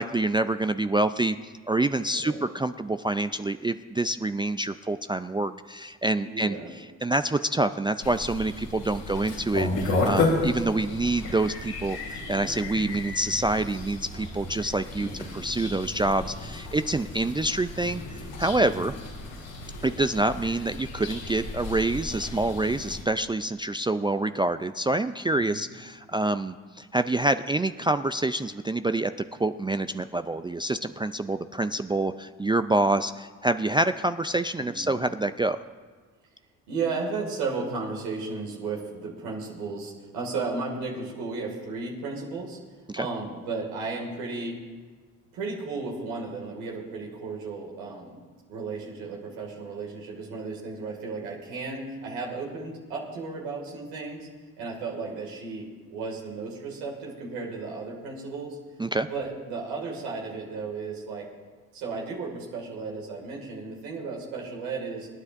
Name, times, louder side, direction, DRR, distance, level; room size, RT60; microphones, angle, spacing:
voice 1, 0.0-18.9 19.8-29.1 29.4-35.6 42.9-43.1 58.8-59.1, right 2 dB, 15° right, 10 dB, 0.4 m, -27 dB
voice 2, 2.1-2.5 6.3-6.7 9.0-9.4 15.0-15.4 18.6-19.0 25.4-25.7 34.6-35.0 36.7-42.6 43.0-44.6 45.3-48.2 48.5-54.3 54.6-58.6 59.0-61.2 61.7-65.1, right 4 dB, 85° right, -1 dB, 2.3 m, -34 dB
sound 1, 8.0-23.0, left 2 dB, 85° left, 3.1 m, -33 dB
27.0 x 9.6 x 2.6 m, 1.4 s
hypercardioid pair, 55°, 38 cm